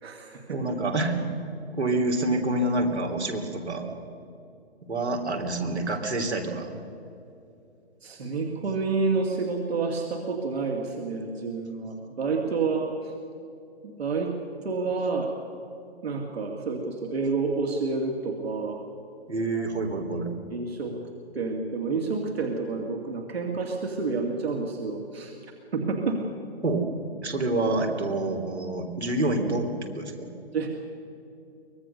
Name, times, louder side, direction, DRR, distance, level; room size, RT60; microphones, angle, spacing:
voice 1, 0.0-0.6 8.0-13.1 13.8-14.3 14.6-15.3 16.0-18.8 19.5-19.7 20.5-20.9 21.3-25.3 25.7-26.3 30.5-30.7, right 4 dB, 70° right, 1 dB, 2.5 m, -29 dB
voice 2, 0.5-1.3 1.7-3.9 4.8-6.7 19.3-20.3 26.6-26.9 27.2-30.3, right 2 dB, 85° right, 2 dB, 3.4 m, -27 dB
24.0 x 19.0 x 6.7 m, 2.7 s
figure-of-eight pair, 135°, 32 cm